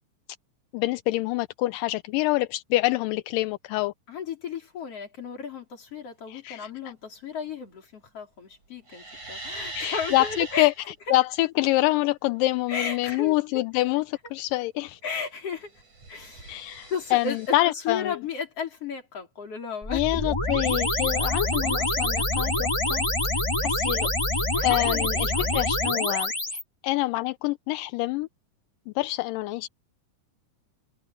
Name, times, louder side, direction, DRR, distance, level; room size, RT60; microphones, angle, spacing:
voice 1, 0.7-3.9 6.3-6.7 9.8-15.0 16.5-18.2 19.9-23.1 23.6-28.3 28.9-29.7, left 18 dB, 85° left, 2.3 m, -26 dB
voice 2, 4.1-10.7 12.7-13.6 15.0-15.7 16.1-16.5 16.9-20.1 24.5-25.5, left 5 dB, 45° left, 4.9 m, -34 dB
sound 1, 8.9-10.8 15.6-17.6, right 1 dB, 60° right, 8.5 m, -40 dB
sound 2, 19.8-26.6, left 1 dB, 10° left, 1.8 m, -26 dB
omnidirectional pair, 3.9 m